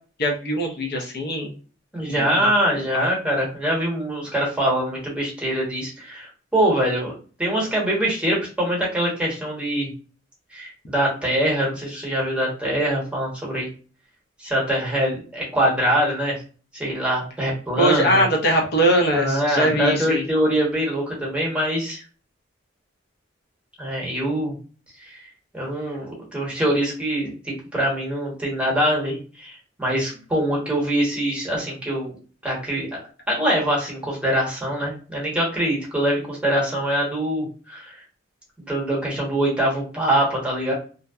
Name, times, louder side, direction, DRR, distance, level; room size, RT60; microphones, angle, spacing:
voice 1, 0.2-1.5 2.1-2.5 2.9-3.1 17.8-20.2, equal, 55° left, 0 dB, 0.6 m, -21 dB
voice 2, 1.9-7.1 7.4-9.9 10.5-13.7 14.4-16.4 16.7-18.2 19.1-22.0 23.8-24.5 25.0-25.2 25.5-32.2 32.4-32.9 33.3-37.9 38.6-40.7, right 1 dB, 5° right, -4 dB, 0.9 m, -23 dB
2.6 x 2.1 x 2.2 m, 0.38 s
head